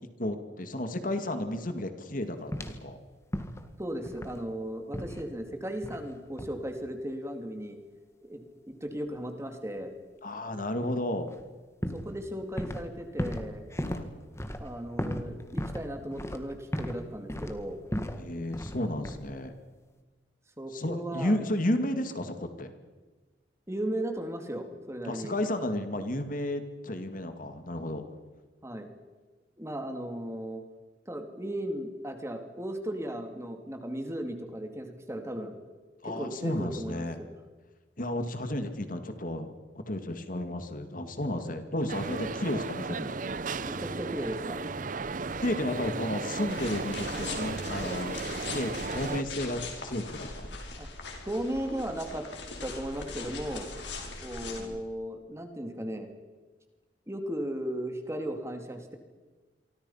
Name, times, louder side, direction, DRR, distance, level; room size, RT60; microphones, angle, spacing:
voice 1, 0.2-3.0 10.2-11.3 13.8-14.1 18.2-19.5 20.7-22.7 25.0-28.0 36.0-37.2 38.0-43.1 45.4-48.2 48.5-50.5 54.6-54.8, left 1 dB, 45° left, 8 dB, 2.2 m, -32 dB
sound 1, 2.5-2.9 3.3-3.7 4.0-4.5 4.9-5.2 5.8-6.1 6.4-6.6 11.3-11.4 11.8-12.9 13.2-17.0 17.3-18.2 18.5-18.8 19.0-19.4, equal, 15° left, 1.8 m, -35 dB
voice 2, 3.8-7.8 8.2-8.4 8.7-9.9 11.9-13.6 14.6-17.8 20.6-21.4 23.7-25.3 28.6-28.9 29.6-30.6 31.1-35.5 36.0-37.3 41.4-41.5 43.6-44.6 46.0-46.2 50.8-50.9 51.2-52.2 52.6-53.7 54.2-56.1 57.1-59.0, right 1 dB, 15° right, 5 dB, 2.5 m, -36 dB
sound 2, 41.9-49.2, right 4 dB, 45° right, 0.8 m, -35 dB
Walking in snow, 46.5-54.6, left 3 dB, 70° left, 5.2 m, -40 dB
27.5 x 24.0 x 5.7 m, 1.3 s
head